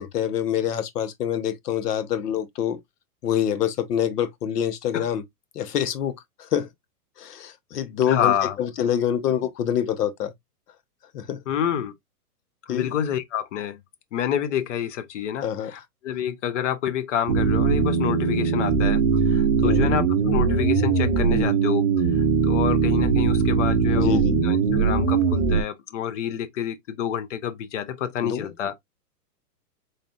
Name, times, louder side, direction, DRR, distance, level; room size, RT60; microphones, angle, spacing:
voice 1, 0.0-2.8 3.2-5.2 5.5-6.1 6.4-6.7 7.2-10.3 11.1-11.4 12.7-12.8 15.4-15.7 19.6-19.9 24.0-24.4 28.2-28.5, left 9 dB, 75° left, 1.1 m, -26 dB
voice 2, 8.1-8.6 11.5-11.9 12.7-13.8 14.1-28.8, left 9 dB, 50° left, 0.7 m, -28 dB
sound 1, 17.3-25.6, right 5 dB, 25° right, 0.5 m, -21 dB
4.2 x 3.3 x 2.4 m
hypercardioid pair, 165°, 47 cm